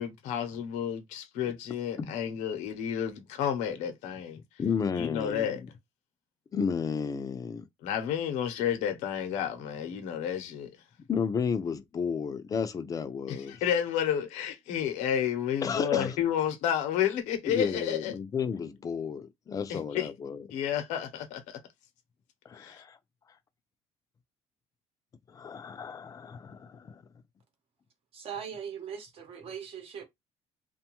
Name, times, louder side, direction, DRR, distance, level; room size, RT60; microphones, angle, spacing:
voice 1, 0.0-4.4 4.9-5.6 7.8-10.8 13.3-18.2 19.7-20.1 20.5-21.6 22.6-22.8, left 9 dB, 90° left, 0.7 m, -31 dB
voice 2, 4.6-5.6 6.5-7.7 11.1-13.6 15.6-16.2 17.5-20.4 22.5-23.0 25.3-27.0, left 6 dB, 30° left, 0.4 m, -32 dB
voice 3, 28.1-30.0, right 8 dB, 55° right, 0.9 m, -40 dB
2.5 x 2.3 x 2.9 m
cardioid pair, 125°, 12 cm